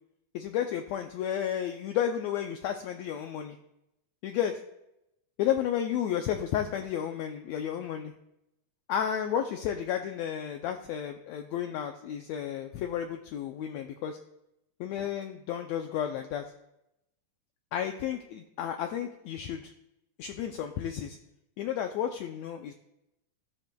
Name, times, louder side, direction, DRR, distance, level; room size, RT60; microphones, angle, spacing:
voice 1, 0.3-3.6 4.2-4.5 5.4-8.1 8.9-14.2 14.8-16.4 17.7-19.7 20.2-21.2 21.6-22.7, left 9 dB, 80° left, 5 dB, 1.6 m, -32 dB
14.5 x 13.5 x 2.3 m, 0.84 s
omnidirectional pair, 3.7 m